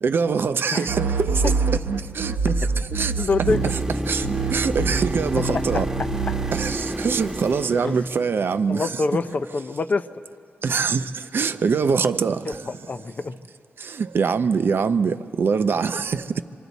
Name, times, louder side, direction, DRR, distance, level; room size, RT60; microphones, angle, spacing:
voice 1, 0.0-1.5 2.0-3.3 3.7-3.8 4.1-5.9 6.5-9.0 10.6-12.7 13.8-16.4, right 5 dB, 60° right, 0.6 m, -24 dB
sound 1, 0.9-4.0 4.2-6.8, right 4 dB, 85° right, 1.1 m, -25 dB
voice 2, 2.9-3.6 5.5-5.8 6.3-6.4 7.7-8.0 8.7-10.1 12.7-13.3, left 3 dB, 40° left, 0.5 m, -26 dB
sound 2, 3.5-8.5 12.5-12.6, right 1 dB, 15° right, 1.2 m, -29 dB
25.5 x 25.5 x 4.1 m
wide cardioid pair, 130°, 4 cm